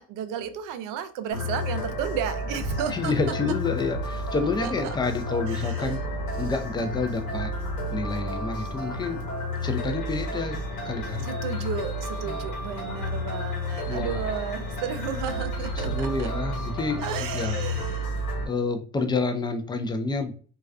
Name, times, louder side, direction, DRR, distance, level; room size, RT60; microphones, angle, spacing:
voice 1, 0.0-3.3 4.6-5.0 5.5-5.9 11.2-16.3 17.0-18.1, right 8 dB, 65° right, 10 dB, 0.5 m, -33 dB
sound 1, 1.3-18.5, left 1 dB, 75° left, 1.1 m, -31 dB
voice 2, 2.9-6.0 6.4-7.5 7.9-9.2 9.6-11.2 12.2-12.4 13.9-14.3 15.8-17.6 18.5-20.3, left 3 dB, 15° left, 7 dB, 0.4 m, -29 dB
2.3 x 2.3 x 2.3 m, 0.42 s
supercardioid pair, 75°, 35 cm